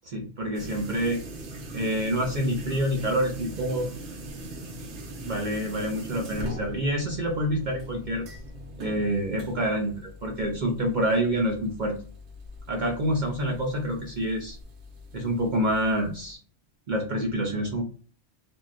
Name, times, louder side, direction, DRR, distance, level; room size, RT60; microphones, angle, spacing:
voice 1, 0.0-1.2 1.7-3.9 5.2-8.2 8.8-12.0 12.7-14.6 15.1-16.4 16.9-17.8, equal, 50° right, 0 dB, 0.7 m, -27 dB
sound 1, 0.5-16.3, equal, 80° right, 1.0 m, -41 dB
3.5 x 2.3 x 2.4 m, 0.41 s
omnidirectional pair, 1.2 m